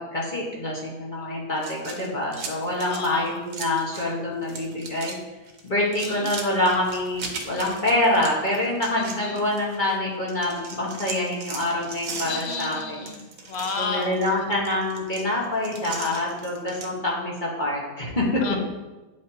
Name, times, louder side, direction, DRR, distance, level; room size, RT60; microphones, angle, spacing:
voice 1, 0.0-5.1 5.6-13.0 13.8-18.4, left 1 dB, 35° left, -4 dB, 1.4 m, -26 dB
sound 1, 1.6-4.1 4.4-5.2 5.5-9.9 10.3-16.9, right 4 dB, 65° right, 1.2 m, -38 dB
voice 2, 2.9-3.4 5.8-6.3 8.9-9.4 12.2-14.5 18.4-18.6, left 4 dB, 55° left, 4 dB, 0.8 m, -33 dB
8.6 x 5.1 x 2.8 m, 1.1 s
omnidirectional pair, 1.6 m